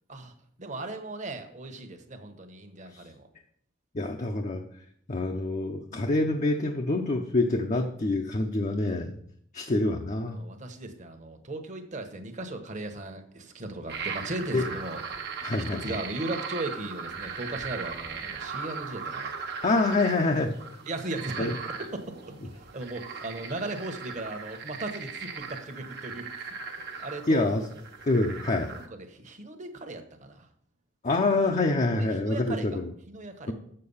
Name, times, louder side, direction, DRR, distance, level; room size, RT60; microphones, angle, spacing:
voice 1, 0.6-3.3 10.3-15.0 15.6-19.4 20.9-22.1 22.5-26.5 27.0-27.5 28.7-30.5 31.9-32.8 33.1-33.5, right 2 dB, 40° right, 6 dB, 1.1 m, -37 dB
voice 2, 3.9-4.6 5.1-9.2 9.5-10.4 14.5-14.6 15.4-16.0 19.6-20.8 21.4-21.5 27.3-27.7 28.0-28.7 31.0-32.9 33.5-33.6, left 2 dB, 40° left, 3 dB, 0.6 m, -26 dB
sound 1, 13.9-28.9, right 5 dB, 60° right, 1.2 m, -38 dB
7.5 x 6.7 x 5.5 m, 0.66 s
head